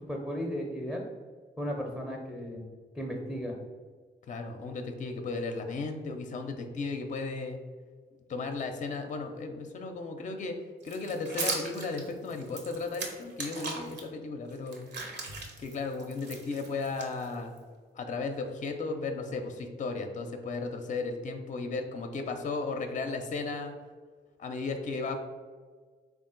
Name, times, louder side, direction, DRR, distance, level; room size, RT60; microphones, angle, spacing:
voice 1, 0.1-1.0 1.6-2.7 2.9-3.6, equal, ahead, -1 dB, 0.6 m, -35 dB
voice 2, 4.3-7.6 8.3-10.6 10.8-14.9 15.6-17.5 17.9-23.7 24.4-25.2, left 3 dB, 40° left, 6 dB, 0.5 m, -35 dB
sound 1, 10.8-14.0 14.5-17.6, right 3 dB, 65° right, 0.9 m, -38 dB
3.5 x 2.4 x 3.8 m, 1.5 s
cardioid pair, 65°, 19 cm